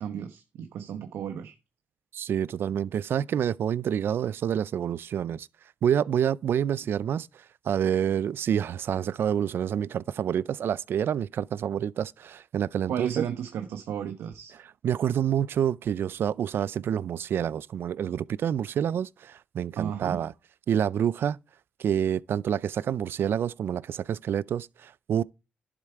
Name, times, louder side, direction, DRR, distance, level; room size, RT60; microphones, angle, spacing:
voice 1, 0.0-1.5 12.9-14.5 19.8-20.2, right 9 dB, 85° right, 1.1 m, -33 dB
voice 2, 2.1-5.5 5.8-7.3 7.7-13.2 14.8-20.3 20.7-21.4 21.8-25.2, right 9 dB, 65° right, 0.4 m, -28 dB
11.5 x 7.5 x 4.6 m
cardioid pair, 90°, 4 cm